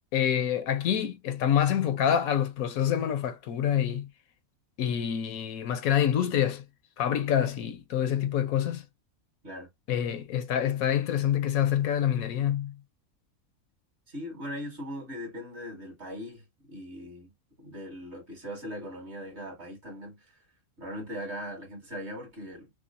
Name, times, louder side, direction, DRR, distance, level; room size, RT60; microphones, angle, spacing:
voice 1, 0.1-4.1 4.8-6.6 7.0-8.8 9.9-12.8, left 9 dB, 80° left, 1.1 m, -26 dB
voice 2, 14.1-17.3 17.6-20.3 20.8-22.7, equal, 50° right, 2.0 m, -40 dB
6.0 x 2.0 x 2.5 m
omnidirectional pair, 1.4 m